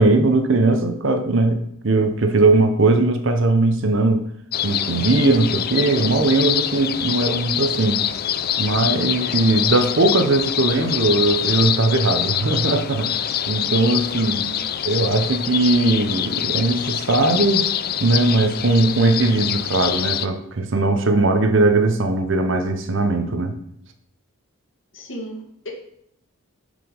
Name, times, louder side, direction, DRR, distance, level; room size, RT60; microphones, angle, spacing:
voice 1, 0.0-4.2 4.6-8.0 8.6-14.5 14.8-17.7 18.0-23.5, right 2 dB, 60° right, 7 dB, 0.8 m, -19 dB
sound 1, 4.5-20.3, left 10 dB, 45° left, 0.4 m, -25 dB
voice 2, 14.3-14.7 24.9-25.7, equal, 60° left, -1 dB, 1.9 m, -36 dB
7.4 x 5.0 x 5.2 m, 0.72 s
head